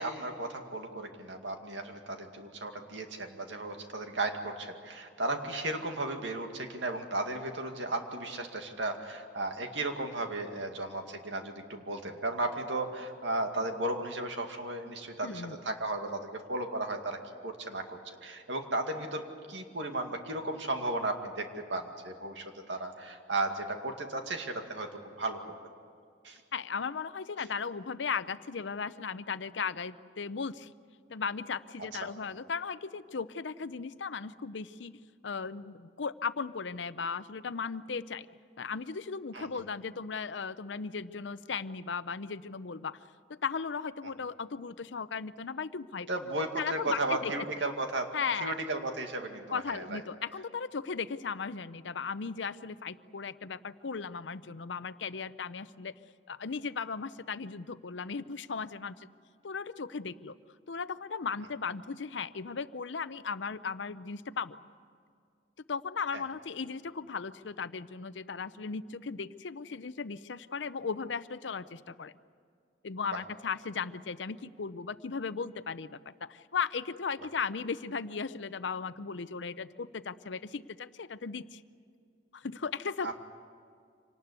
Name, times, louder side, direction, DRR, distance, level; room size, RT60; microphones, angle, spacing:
voice 1, 0.0-24.9 25.2-25.4 26.2-26.4 32.0-32.1 39.3-39.5 46.1-48.1 48.4-50.0 66.1-66.2 83.0-83.1, right 2 dB, 85° right, 4 dB, 2.3 m, -35 dB
voice 2, 15.2-15.6 26.5-30.7 31.1-38.3 38.6-43.0 43.3-46.1 46.6-47.5 48.1-48.6 49.5-55.9 56.3-59.1 59.4-60.4 60.7-64.6 65.7-72.1 72.8-81.6 82.3-83.1, left 5 dB, 85° left, 14 dB, 0.7 m, -36 dB
26.0 x 19.0 x 8.2 m, 2.3 s
head